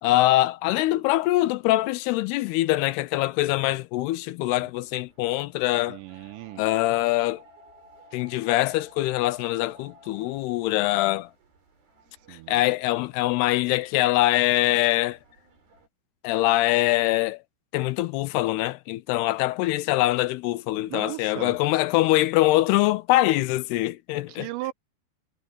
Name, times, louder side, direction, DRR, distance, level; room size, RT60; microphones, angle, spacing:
voice 1, 0.0-6.0 6.6-7.4 8.1-11.3 12.3-15.2 16.2-17.4 17.7-24.5, left 17 dB, 85° left, 2.5 m, -23 dB
sound 1, 4.8-15.9, right 1 dB, 55° right, 8.0 m, -55 dB
voice 2, 5.9-6.6 12.1-12.6 20.8-21.6 24.3-24.7, right 18 dB, 85° right, 3.0 m, -37 dB
omnidirectional pair, 5.0 m